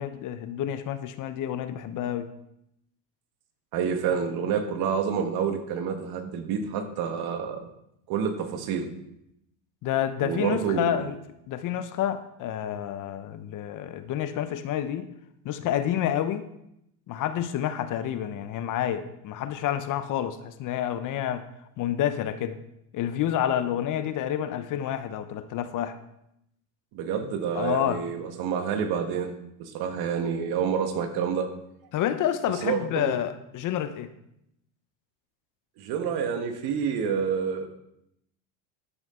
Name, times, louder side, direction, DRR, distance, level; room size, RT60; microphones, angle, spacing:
voice 1, 0.0-2.3 9.8-11.1 11.5-15.1 15.4-16.5 17.1-21.4 21.8-22.6 22.9-26.0 27.5-28.0 31.9-34.1, left 10 dB, 45° left, 11 dB, 0.9 m, -29 dB
voice 2, 3.7-7.7 8.1-8.9 10.2-11.1 26.9-31.5 32.6-33.2 35.8-37.7, right 7 dB, 55° right, 7 dB, 1.5 m, -28 dB
11.0 x 7.6 x 3.7 m, 0.79 s
supercardioid pair, 105°, 44 cm